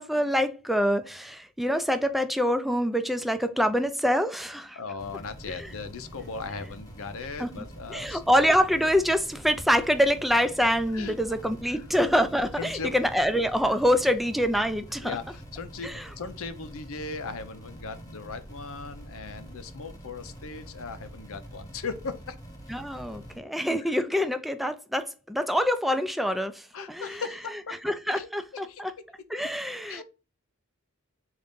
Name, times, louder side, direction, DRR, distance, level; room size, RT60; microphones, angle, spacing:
voice 1, 0.0-4.8 5.6-5.7 7.4-7.5 7.9-15.2 15.8-16.1 22.7-27.2 27.8-28.9 29.3-30.0, equal, ahead, 0.3 m, -25 dB
voice 2, 4.8-8.3 10.9-11.2 11.6-11.8 12.6-12.9 15.0-22.3 23.8-23.9 26.7-27.8 28.1-28.8 29.9-30.0, left 4 dB, 65° left, 0.6 m, -38 dB
sound 1, 5.0-23.4, equal, 15° left, 1.1 m, -45 dB
3.9 x 2.6 x 3.5 m
head